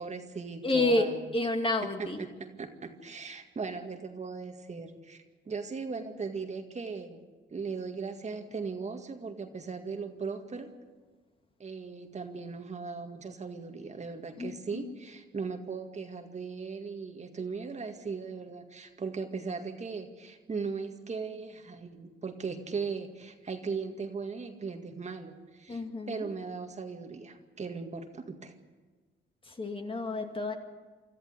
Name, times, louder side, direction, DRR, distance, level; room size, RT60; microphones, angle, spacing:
voice 1, 0.0-1.3 2.0-2.3 2.6-7.2 7.5-10.7 11.6-25.8 26.1-28.5, right 4 dB, 35° right, 5 dB, 2.0 m, -38 dB
voice 2, 0.6-2.2 14.4-14.9 25.7-26.3 29.4-30.5, left 2 dB, 25° left, 4 dB, 2.3 m, -30 dB
25.0 x 14.0 x 8.2 m, 1.4 s
cardioid pair, 90°, 20 cm